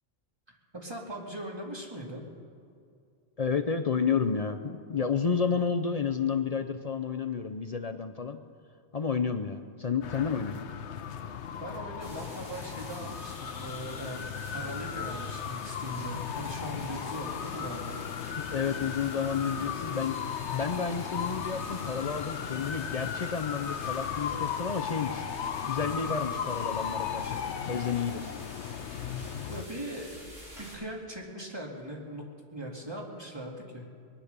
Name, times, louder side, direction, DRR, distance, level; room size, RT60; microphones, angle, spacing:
voice 1, 0.7-2.3 11.6-14.2 14.5-18.0 29.5-30.3 30.6-32.2 32.5-33.8, right 1 dB, 20° right, -1 dB, 2.2 m, -40 dB
voice 2, 3.4-8.4 8.9-10.6 18.4-20.2 20.5-25.2 25.7-27.4 27.7-28.2, left 6 dB, 45° left, 8 dB, 0.5 m, -31 dB
sound 1, 10.0-29.6, left 8 dB, 65° left, 1.0 m, -36 dB
sound 2, 12.0-30.7, equal, 75° right, 5.8 m, -49 dB
20.5 x 10.0 x 6.7 m, 2.3 s
omnidirectional pair, 1.3 m